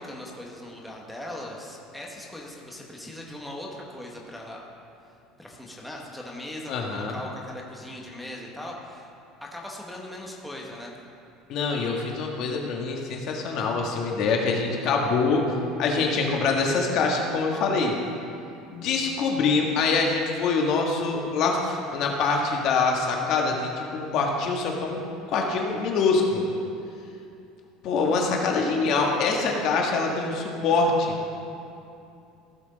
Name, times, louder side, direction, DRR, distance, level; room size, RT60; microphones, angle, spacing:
voice 1, 0.0-4.6 5.4-9.1 9.4-11.0, left 1 dB, ahead, -3 dB, 1.0 m, -39 dB
voice 2, 6.7-7.2 11.5-15.5 15.8-17.9 18.7-25.0 25.3-26.4 27.8-31.1, left 4 dB, 45° left, 0 dB, 1.4 m, -24 dB
15.5 x 6.1 x 4.0 m, 2.6 s
cardioid pair, 160°, 0 cm